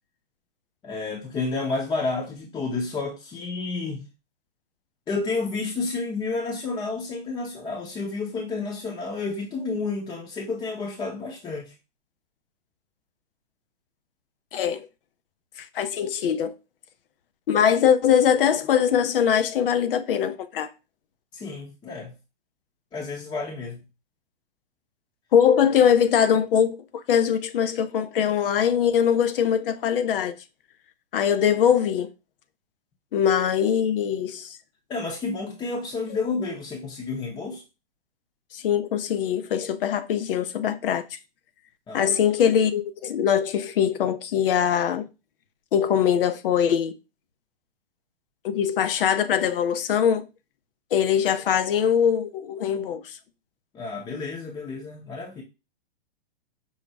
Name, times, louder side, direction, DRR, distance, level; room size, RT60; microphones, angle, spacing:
voice 1, 0.8-4.1 5.1-11.7 21.3-22.1 22.9-23.8 34.9-37.6 41.9-42.1 53.7-55.4, left 3 dB, 15° left, 0.7 m, -30 dB
voice 2, 14.5-14.9 15.7-16.5 17.5-20.7 25.3-26.8 27.1-30.3 31.1-32.1 33.1-34.6 38.5-41.0 41.9-45.1 45.7-46.9 48.4-50.2 50.9-53.0, left 8 dB, 65° left, 0.7 m, -22 dB
5.5 x 2.1 x 4.6 m
hypercardioid pair, 125°, 30 cm